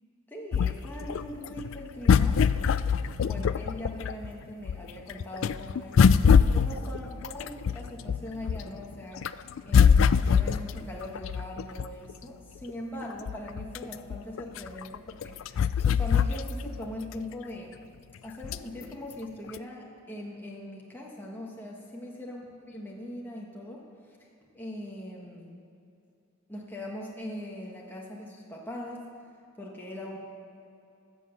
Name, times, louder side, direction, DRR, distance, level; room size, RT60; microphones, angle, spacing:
voice 1, 0.3-2.4 3.2-9.2 9.6-17.8 18.2-23.8 24.2-24.3 24.5-25.5 26.5-29.1 29.6-30.2, left 1 dB, 10° left, -3 dB, 1.4 m, -41 dB
sound 1, 0.5-4.3 4.7-8.8 9.2-12.1 12.7-12.8 13.0-16.8 17.2-17.3 18.4-18.8 19.5-19.6, left 6 dB, 70° left, 0.4 m, -23 dB
14.5 x 7.7 x 7.0 m, 2.7 s
head